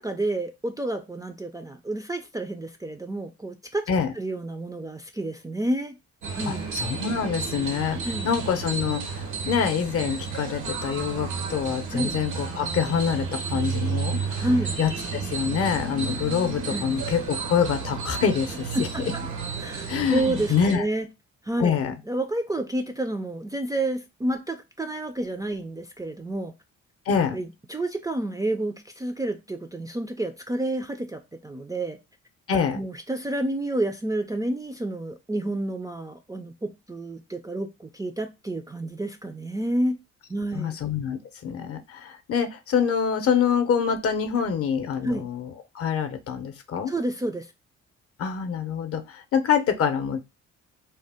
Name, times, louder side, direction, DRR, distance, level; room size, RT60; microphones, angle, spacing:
voice 1, 0.0-3.9 4.2-6.0 6.3-6.7 8.0-8.3 11.9-12.1 14.4-14.7 16.7-16.9 18.7-19.2 19.6-21.1 21.4-21.8 22.1-26.5 27.3-32.0 32.7-40.0 40.3-40.8 45.0-45.3 46.9-47.5, right 1 dB, 10° right, 0.3 m, -29 dB
sound 1, 6.2-20.7, right 5 dB, 85° right, 0.9 m, -32 dB
voice 2, 6.5-8.0 8.2-14.5 14.8-18.8 19.9-20.8 21.6-21.9 27.1-27.4 32.5-32.8 40.5-45.5 45.7-46.9 48.2-50.2, left 7 dB, 50° left, 0.6 m, -26 dB
2.7 x 2.0 x 3.4 m
cardioid pair, 90°, 30 cm